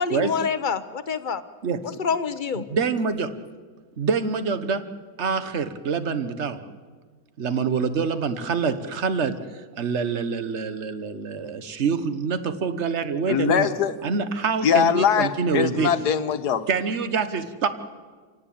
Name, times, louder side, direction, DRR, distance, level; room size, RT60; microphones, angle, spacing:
voice 1, 0.0-1.4 2.0-2.6, left 6 dB, 35° left, 11 dB, 0.9 m, -26 dB
voice 2, 2.5-3.3 4.0-4.8 5.2-6.6 7.4-9.4 9.8-13.7 14.0-15.9 16.7-17.7, right 5 dB, 45° right, 10 dB, 1.4 m, -25 dB
voice 3, 13.3-13.9 14.6-16.6, left 8 dB, 75° left, 10 dB, 1.7 m, -22 dB
27.0 x 18.0 x 8.7 m, 1.5 s
omnidirectional pair, 1.8 m